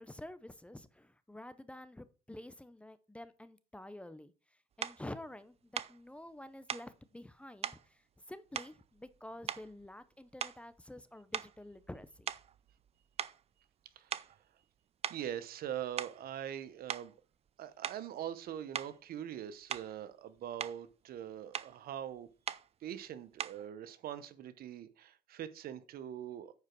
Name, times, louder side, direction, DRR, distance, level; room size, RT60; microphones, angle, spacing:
voice 1, 0.0-12.3, left 1 dB, 5° left, 0.6 m, -49 dB
sound 1, 4.8-5.0 5.7-6.0 6.7-6.9 7.6-7.8 8.5-9.2 9.5-9.9 10.4-10.7 11.3-12.9 13.2-13.4 14.1-14.4 15.0-15.3 15.8-16.3 16.9-17.1 17.8-18.1 18.7-19.0 19.7-20.0 20.4-20.8 21.5-21.8 22.5-22.7 23.4-23.7, right 9 dB, 35° right, 0.4 m, -40 dB
voice 2, 14.0-14.3 15.1-17.1 17.6-22.3 22.8-26.5, right 10 dB, 65° right, 0.8 m, -43 dB
9.5 x 5.0 x 4.6 m
cardioid pair, 110°, 17 cm